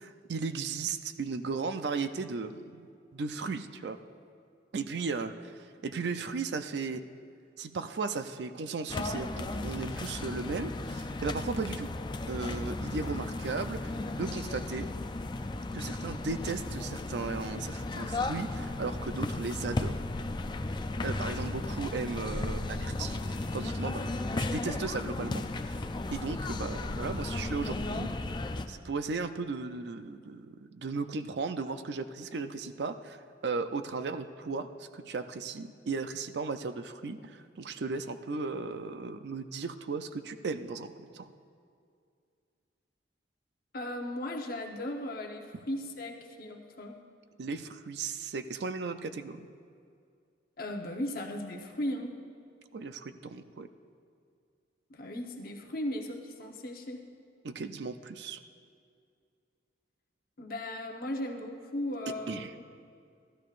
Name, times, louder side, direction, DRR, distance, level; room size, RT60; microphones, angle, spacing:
voice 1, 0.0-4.0 4.7-7.0 7.6-11.9 12.3-14.9 15.7-20.1 21.0-28.1 28.7-41.3 47.4-49.5 52.7-53.7 57.4-58.4 62.3-62.5, right 4 dB, 65° right, 10 dB, 0.5 m, -36 dB
sound 1, 8.9-28.7, left 2 dB, 25° left, 0.4 m, -35 dB
voice 2, 43.7-47.0 50.6-52.1 54.9-57.0 60.4-62.5, left 1 dB, 50° left, 2 dB, 1.0 m, -37 dB
15.5 x 12.5 x 2.5 m, 2.3 s
head